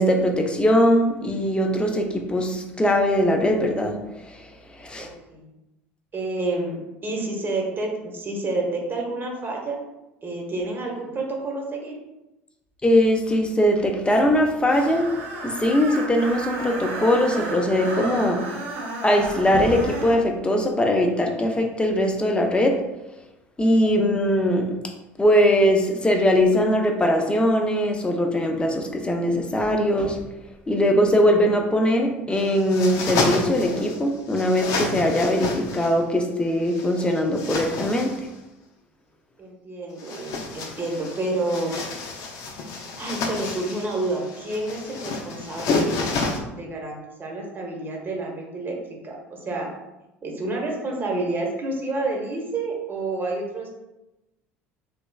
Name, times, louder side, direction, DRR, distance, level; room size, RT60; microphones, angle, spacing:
voice 1, 0.0-4.0 4.3-4.4 4.8-5.1 12.8-15.1 15.4-18.4 19.0-22.8 23.6-24.7 25.2-30.2 30.7-38.1, equal, 15° left, 3 dB, 0.6 m, -21 dB
voice 2, 5.0-5.5 6.1-6.8 7.0-9.8 10.2-12.0 39.4-41.8 43.0-48.8 49.0-49.7 50.2-53.7, right 2 dB, 30° right, 0 dB, 1.0 m, -29 dB
Screech, 14.7-20.2, right 2 dB, 75° right, 0.7 m, -33 dB
sound 1, 32.3-34.0 34.3-36.0 36.7-38.3 39.9-46.4, left 3 dB, 60° left, 0.6 m, -30 dB
3.3 x 3.0 x 2.3 m, 0.97 s
hypercardioid pair, 70°, 7 cm